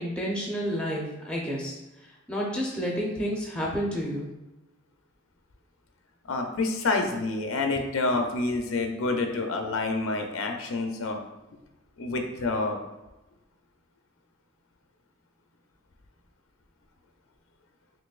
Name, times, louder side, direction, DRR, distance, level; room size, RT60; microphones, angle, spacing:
voice 1, 0.0-4.3, equal, 5° left, -3 dB, 0.5 m, -30 dB
voice 2, 6.3-11.2 12.0-12.8, left 3 dB, 80° left, 4 dB, 0.5 m, -28 dB
3.9 x 2.9 x 2.4 m, 1.0 s
head